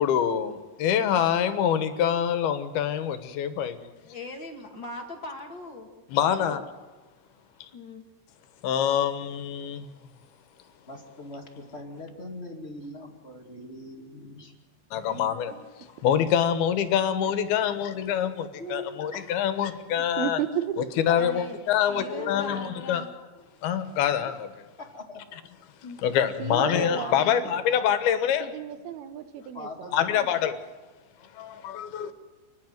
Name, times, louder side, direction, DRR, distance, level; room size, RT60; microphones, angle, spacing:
voice 1, 0.0-3.9 6.1-6.6 8.6-9.9 14.9-15.5 16.0-20.4 21.0-23.0 23.6-24.5 26.0-28.5 29.9-30.6 31.3-32.1, left 9 dB, 85° left, 10 dB, 3.1 m, -25 dB
voice 2, 3.9-6.6 7.7-8.0 20.0-20.1 21.1-21.6 21.9-23.1 25.8-26.0, left 2 dB, 40° left, 3 dB, 2.1 m, -40 dB
voice 3, 10.9-14.5 15.9-16.0 17.2-17.3 18.6-19.3 21.1-21.2 22.0-22.7 24.8-25.3 26.5-27.5 29.5-30.5, left 2 dB, 20° left, 2 dB, 1.8 m, -40 dB
voice 4, 15.1-15.7 20.2-20.8 26.4-27.5 28.4-29.9, right 9 dB, 90° right, 9 dB, 3.1 m, -33 dB
29.0 x 10.5 x 9.3 m, 1.3 s
omnidirectional pair, 4.3 m